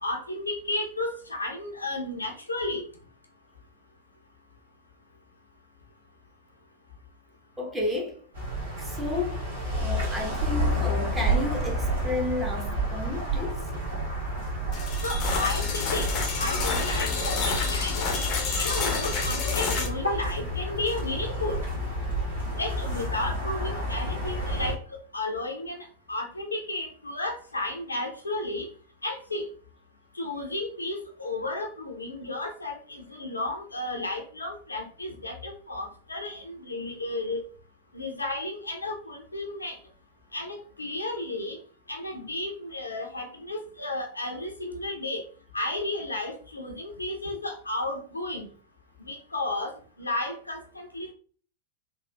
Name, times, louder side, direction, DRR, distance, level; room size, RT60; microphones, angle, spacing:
voice 1, 0.0-2.9 15.0-16.1 16.4-18.2 18.6-21.6 22.6-28.7 29.0-29.5 30.1-37.4 37.9-39.8 40.3-41.6 41.9-45.3 45.5-48.5 49.0-51.1, left 2 dB, 80° left, 0.6 m, -33 dB
voice 2, 7.6-8.2 8.8-9.5 9.7-13.7, left 2 dB, 15° right, 0.9 m, -32 dB
sound 1, 8.3-24.7, right 1 dB, 70° right, 1.5 m, -30 dB
sound 2, 14.7-19.9, left 5 dB, 40° left, 0.6 m, -28 dB
3.5 x 2.4 x 2.2 m
figure-of-eight pair, 90°, 0 cm